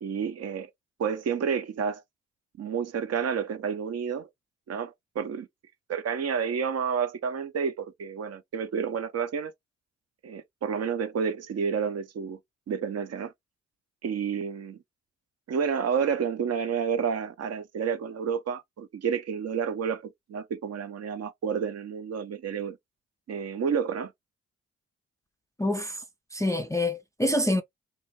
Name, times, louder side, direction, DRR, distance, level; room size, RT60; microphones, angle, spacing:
voice 1, 0.0-0.7 1.0-2.0 2.6-4.3 4.7-5.5 5.9-9.5 10.2-12.4 12.7-13.3 14.0-14.8 15.5-22.8 23.3-24.1, right 7 dB, 55° right, 0.6 m, -30 dB
voice 2, 25.6-26.0 26.3-27.6, left 1 dB, 10° left, 0.3 m, -26 dB
2.3 x 2.1 x 2.8 m
supercardioid pair, 45°, 31 cm